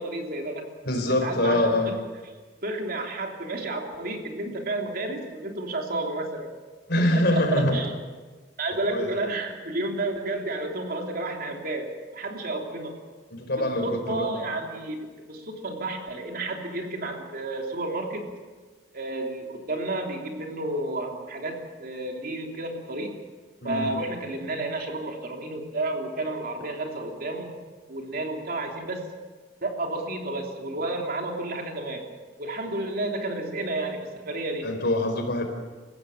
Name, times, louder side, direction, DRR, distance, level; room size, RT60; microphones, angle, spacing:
voice 1, 0.0-0.7 1.2-1.7 2.6-6.5 7.0-7.9 8.6-12.9 13.6-18.3 18.9-23.1 23.6-27.5 27.9-29.1 29.6-32.0 32.4-34.7, right 2 dB, 55° right, 2 dB, 3.3 m, -31 dB
voice 2, 0.8-2.0 6.9-7.8 8.9-9.3 13.3-14.3 23.6-23.9 34.6-35.4, left 1 dB, 60° left, 5 dB, 4.2 m, -24 dB
28.0 x 16.0 x 7.2 m, 1.4 s
head